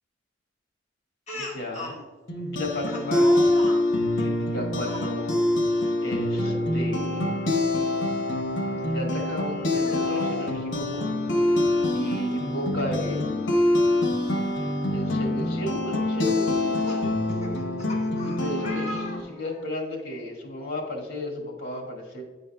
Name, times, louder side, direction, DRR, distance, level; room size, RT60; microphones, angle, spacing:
voice 1, 1.3-1.9 2.4-3.5 4.1-5.4 6.0-7.3 8.8-11.1 11.9-13.5 14.9-17.1 18.2-22.2, left 1 dB, 55° left, 0 dB, 1.8 m, -34 dB
Speech, 1.3-2.0 2.9-3.8 4.8-5.1 6.3-6.6 7.0-7.1 8.8-8.9 9.7-10.6 11.9-12.0 12.3-12.4 14.3-14.4 15.0-15.3 16.4-19.7, left 1 dB, 35° left, 1.4 m, -39 dB
sound 1, 2.3-19.2, left 1 dB, 75° left, 0.9 m, -25 dB
9.1 x 5.3 x 2.2 m, 1.3 s
head